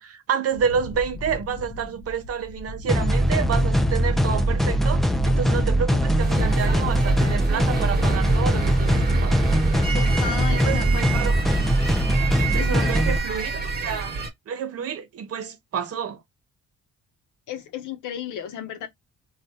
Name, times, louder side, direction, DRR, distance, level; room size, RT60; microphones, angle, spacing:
voice 1, 0.0-9.4 10.5-11.3 12.4-14.1 14.5-16.2, right 7 dB, 55° right, 0.7 m, -29 dB
Wind, 0.5-7.3 7.7-8.1, left 1 dB, 50° left, 0.7 m, -38 dB
sound 1, 2.9-13.2, equal, ahead, 0.3 m, -21 dB
sound 2, 6.2-14.3, right 4 dB, 35° right, 1.1 m, -29 dB
voice 2, 9.9-11.0 12.6-12.9 17.5-18.9, left 9 dB, 80° left, 0.8 m, -33 dB
3.2 x 2.3 x 2.7 m
cardioid pair, 90°, 30 cm